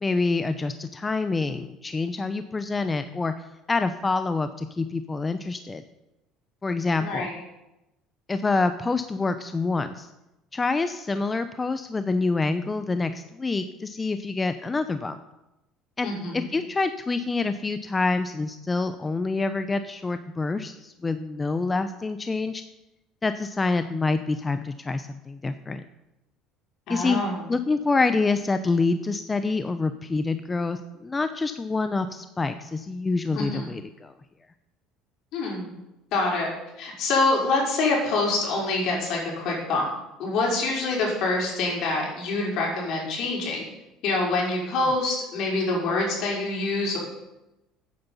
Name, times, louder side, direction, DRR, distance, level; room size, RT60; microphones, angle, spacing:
voice 1, 0.0-3.3 3.7-5.8 6.6-7.3 8.3-10.1 10.5-15.2 16.0-16.1 16.3-22.6 23.2-25.8 26.9-27.2 27.5-34.1, left 3 dB, 20° left, 10 dB, 0.7 m, -26 dB
voice 2, 16.0-16.5 26.9-27.4 33.3-33.7 35.3-35.7 36.1-36.5 36.8-39.9 40.2-43.6 44.0-47.0, left 2 dB, 65° left, -2 dB, 5.4 m, -25 dB
14.0 x 9.5 x 5.6 m, 0.95 s
supercardioid pair, 90°, 0 cm